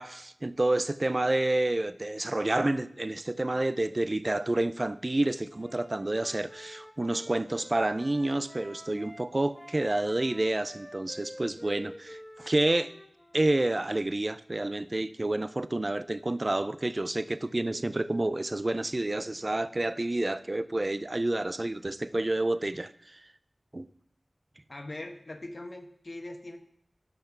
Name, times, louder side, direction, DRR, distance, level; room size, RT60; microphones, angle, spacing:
voice 1, 0.0-12.9 13.3-23.2 23.7-23.9, right 2 dB, 40° right, 14 dB, 0.5 m, -29 dB
Wind instrument woodwind instrument, 5.5-9.3 9.5-13.6, equal, 15° left, 1.2 m, -48 dB
voice 2, 24.7-26.6, left 2 dB, 60° left, 5 dB, 1.2 m, -41 dB
12.0 x 5.8 x 5.9 m, 0.71 s
wide cardioid pair, 45°, 0 cm